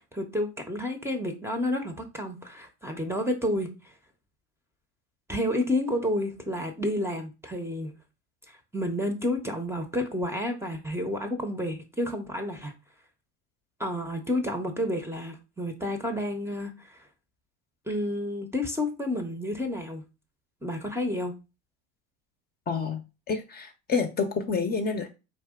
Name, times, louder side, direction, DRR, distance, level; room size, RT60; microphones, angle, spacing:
voice 1, 0.0-3.7 5.3-7.9 8.7-12.7 13.8-17.0 17.9-20.0 20.6-21.3, left 1 dB, 5° right, 0.7 m, -30 dB
voice 2, 22.7-23.0 23.3-25.1, left 5 dB, 25° left, 0.7 m, -28 dB
4.6 x 2.7 x 3.6 m
supercardioid pair, 95°, 35 cm